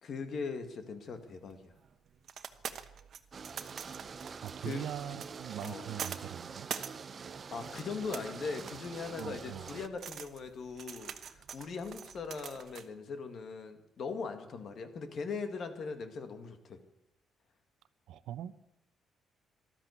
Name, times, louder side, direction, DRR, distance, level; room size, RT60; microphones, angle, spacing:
voice 1, 0.0-1.7 4.6-4.9 5.6-5.9 7.5-16.8, left 5 dB, 60° left, 8 dB, 2.0 m, -40 dB
sound 1, 1.2-12.9, right 8 dB, 60° right, 1.1 m, -46 dB
sound 2, 3.3-9.9, right 5 dB, 40° right, 0.7 m, -45 dB
voice 2, 4.4-6.7 9.2-9.7 18.1-18.5, right 11 dB, 80° right, 14 dB, 0.8 m, -42 dB
13.5 x 12.5 x 8.3 m, 0.84 s
cardioid pair, 90°, 0 cm